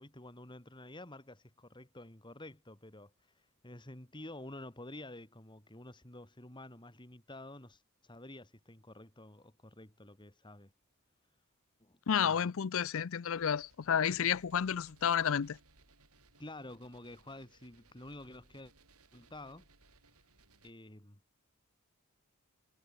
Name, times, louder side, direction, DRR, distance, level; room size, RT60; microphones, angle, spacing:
voice 1, 0.0-3.3 3.6-10.7 11.8-12.4 16.4-18.7 19.1-19.7 20.6-21.2, left 1 dB, 20° left, 2.7 m, -50 dB
voice 2, 12.1-15.6, left 8 dB, 60° left, 0.5 m, -31 dB
sound 1, 13.3-20.7, right 3 dB, 80° right, 7.2 m, -65 dB
head